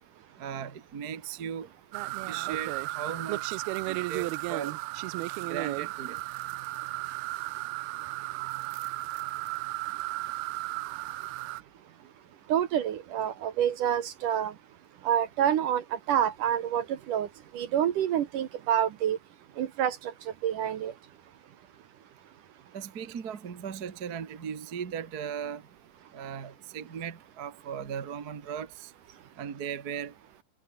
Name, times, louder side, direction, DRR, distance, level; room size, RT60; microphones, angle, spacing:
voice 1, 0.4-1.7 2.0-3.6 3.9-4.8 5.5-6.2 22.7-25.6 26.1-28.9 29.4-30.1, right 8 dB, 40° right, 1.4 m, -37 dB
sound 1, 1.9-11.6, right 20 dB, 80° right, 2.5 m, -34 dB
voice 2, 12.5-14.5 15.0-17.3 17.5-19.2 19.6-20.1 20.4-20.9, right 10 dB, 65° right, 2.5 m, -27 dB
omnidirectional pair, 4.6 m